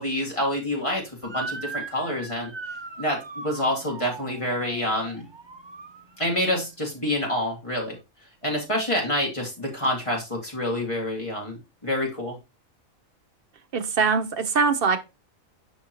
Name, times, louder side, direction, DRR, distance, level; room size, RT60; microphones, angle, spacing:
voice 1, 0.0-2.5 3.0-5.3 6.2-8.0 8.4-12.4, left 1 dB, 25° left, 2.1 m, -27 dB
Motor vehicle (road) / Siren, 1.2-6.5, right 4 dB, 30° right, 0.5 m, -39 dB
voice 2, 13.7-15.0, right 5 dB, 50° right, 0.8 m, -22 dB
6.1 x 5.5 x 3.0 m
omnidirectional pair, 1.4 m